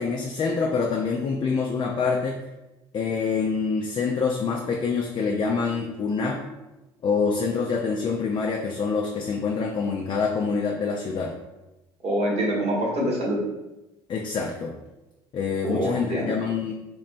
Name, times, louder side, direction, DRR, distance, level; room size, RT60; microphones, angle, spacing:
voice 1, 0.0-2.4 2.9-6.4 7.0-11.3 14.1-14.7 15.3-16.7, left 5 dB, 35° left, 0 dB, 0.3 m, -26 dB
voice 2, 12.0-13.4 15.6-16.3, equal, 45° right, -3 dB, 1.0 m, -25 dB
2.9 x 2.1 x 2.5 m, 1.0 s
hypercardioid pair, 65°, 14 cm